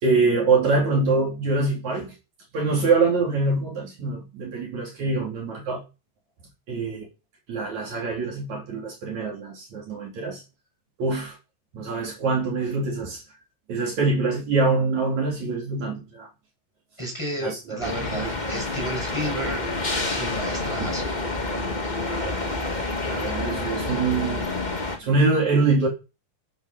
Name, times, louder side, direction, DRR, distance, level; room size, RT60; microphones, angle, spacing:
voice 1, 0.0-2.1 2.5-5.8 6.7-7.1 7.5-10.4 11.0-11.4 11.7-13.2 13.7-16.3 17.4-18.6 20.8-20.9 22.1-22.4 23.0-24.4 25.0-25.9, right 3 dB, 55° right, 4.3 m, -24 dB
voice 2, 17.0-19.6 19.9-21.2, equal, 10° left, 5.4 m, -32 dB
sound 1, 17.8-25.0, left 2 dB, 25° left, 1.0 m, -28 dB
14.5 x 8.0 x 5.3 m
omnidirectional pair, 4.0 m